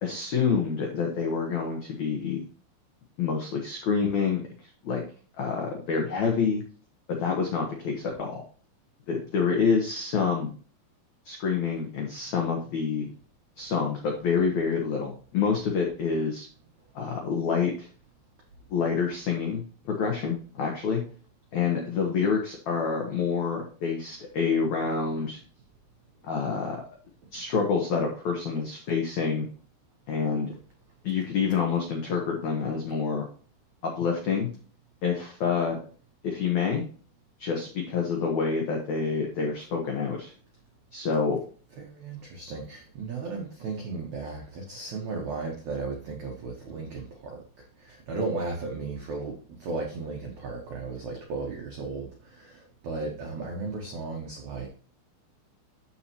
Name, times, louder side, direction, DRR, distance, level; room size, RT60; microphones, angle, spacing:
voice 1, 0.0-2.4 3.2-5.0 5.4-6.6 7.1-8.4 9.1-10.5 11.2-13.1 13.6-16.5 16.9-17.9 18.7-21.0 21.5-25.4 26.2-26.8 27.3-29.5 30.1-30.5 31.0-33.3 33.8-34.5 35.0-35.8 36.2-36.8 37.4-40.3 40.9-41.4, left 5 dB, 90° left, 1 dB, 1.6 m, -27 dB
voice 2, 41.8-54.7, right 3 dB, 85° right, 1 dB, 1.6 m, -35 dB
13.0 x 4.4 x 2.9 m, 0.40 s
omnidirectional pair, 5.2 m